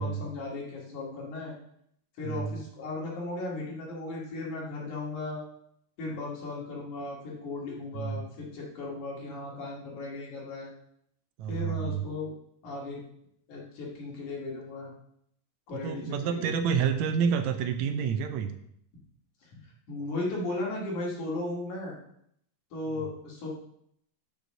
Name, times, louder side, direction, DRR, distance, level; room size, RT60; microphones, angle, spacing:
voice 1, 0.0-1.5 2.2-5.4 6.0-10.7 11.5-12.3 12.6-13.0 13.5-14.9 15.7-16.5 19.4-19.5 19.9-22.0 22.7-23.5, left 2 dB, 70° left, -3 dB, 3.7 m, -36 dB
voice 2, 2.2-2.5 7.9-8.2 11.4-12.0 15.7-18.5 22.9-23.1, right 7 dB, 75° right, 8 dB, 1.8 m, -29 dB
6.9 x 6.3 x 6.5 m, 0.71 s
omnidirectional pair, 3.7 m